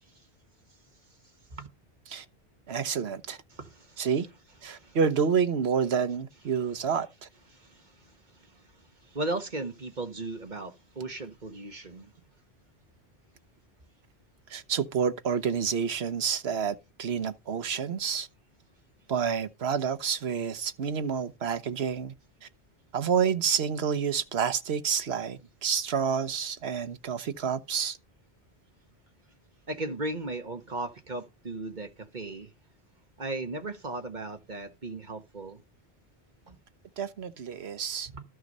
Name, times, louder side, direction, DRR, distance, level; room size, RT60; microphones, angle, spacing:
voice 1, 2.7-3.4 4.0-4.3 4.6-7.3 14.5-18.3 19.1-22.1 22.4-22.5 22.9-28.0 37.0-38.1, right 6 dB, 75° right, 1.3 m, -29 dB
voice 2, 3.5-4.1 4.7-5.0 7.5-12.1 29.7-32.5 33.2-35.6 36.5-36.6 38.1-38.2, right 2 dB, 45° right, 1.6 m, -37 dB
13.0 x 6.3 x 5.3 m
omnidirectional pair, 1.1 m